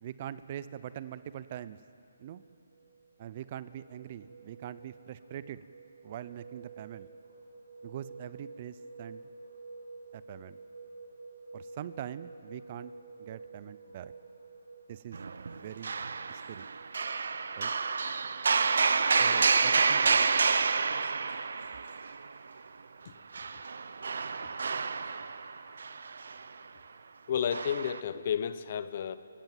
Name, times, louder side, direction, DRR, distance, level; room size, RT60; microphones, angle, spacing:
voice 1, 0.0-1.8 2.2-2.4 3.2-5.6 6.0-7.1 7.8-9.2 10.1-10.6 11.5-12.9 13.2-14.1 14.9-15.2 15.5-16.0 16.3-16.7 17.6-17.7 19.2-20.3, right 11 dB, 35° right, 15 dB, 0.7 m, -43 dB
sound 1, 2.2-19.9, right 3 dB, 85° right, 2.6 m, -51 dB
sound 2, 15.1-15.6 15.8-22.3 23.3-26.4 27.5-28.0, right 4 dB, 70° right, 0.8 m, -29 dB
voice 2, 27.3-29.2, left 8 dB, 45° left, 13 dB, 1.0 m, -31 dB
29.0 x 16.0 x 7.6 m, 2.5 s
hypercardioid pair, 155°, 0 cm